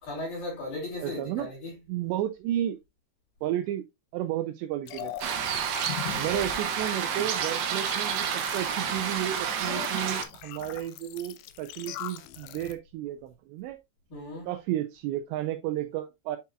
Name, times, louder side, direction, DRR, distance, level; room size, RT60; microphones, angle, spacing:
voice 1, 0.0-1.7 6.1-6.5 14.1-14.5, left 2 dB, 50° left, 5.0 m, -37 dB
voice 2, 1.0-1.5 1.9-2.8 3.4-3.9 4.1-5.4 6.2-13.8 14.4-16.4, right 12 dB, 85° right, 2.5 m, -32 dB
sound 1, 4.9-12.7, left 12 dB, 85° left, 2.5 m, -41 dB
sound 2, 5.2-10.2, right 7 dB, 70° right, 2.4 m, -30 dB
9.0 x 5.6 x 2.4 m
omnidirectional pair, 5.6 m